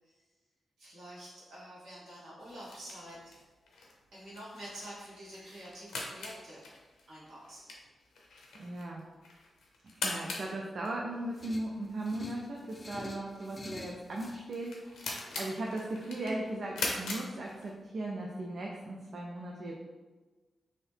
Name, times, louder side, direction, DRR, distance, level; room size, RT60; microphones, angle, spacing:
voice 1, 0.8-3.2 4.1-6.6 7.1-7.6, equal, 80° right, -8 dB, 1.4 m, -47 dB
sound 1, 2.4-18.0, left 3 dB, 85° left, 0.6 m, -43 dB
voice 2, 8.6-9.0 10.0-19.7, right 1 dB, 65° right, -2 dB, 0.4 m, -38 dB
sound 2, 11.4-14.5, left 2 dB, 40° left, 0.3 m, -47 dB
3.1 x 2.7 x 3.2 m, 1.3 s
supercardioid pair, 45°, 0 cm